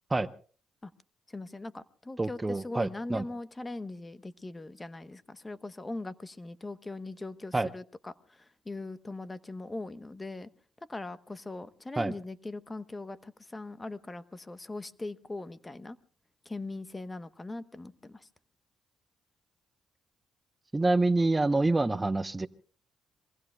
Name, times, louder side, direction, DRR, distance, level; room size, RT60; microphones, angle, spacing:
voice 1, 1.3-10.5 10.9-16.0 16.4-18.3, left 2 dB, 20° left, 14 dB, 0.9 m, -40 dB
voice 2, 2.2-3.2 7.5-7.7 12.0-12.1 20.7-22.5, right 2 dB, 20° right, 13 dB, 0.7 m, -27 dB
27.5 x 23.5 x 2.2 m, 0.40 s
cardioid pair, 90°, 0 cm